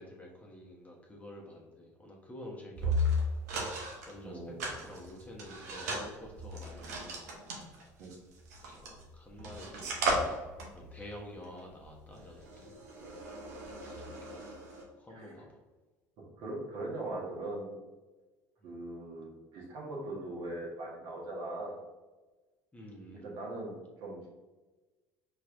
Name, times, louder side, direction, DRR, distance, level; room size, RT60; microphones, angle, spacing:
voice 1, 0.0-3.1 4.1-7.4 8.7-10.0 10.7-12.8 13.0-13.2 13.8-14.5 15.0-15.6 18.6-18.7 22.7-23.3, left 1 dB, 15° left, -2 dB, 1.1 m, -49 dB
sound 1, 2.7-4.1 4.6-9.1 9.4-14.8, equal, 85° right, 0.7 m, -35 dB
voice 2, 4.2-4.8 8.0-8.1 15.1-15.3 16.2-17.7 18.6-21.8 23.2-24.3, right 2 dB, 65° right, -3 dB, 1.3 m, -40 dB
4.4 x 3.2 x 2.5 m, 1.2 s
hypercardioid pair, 75°, 8 cm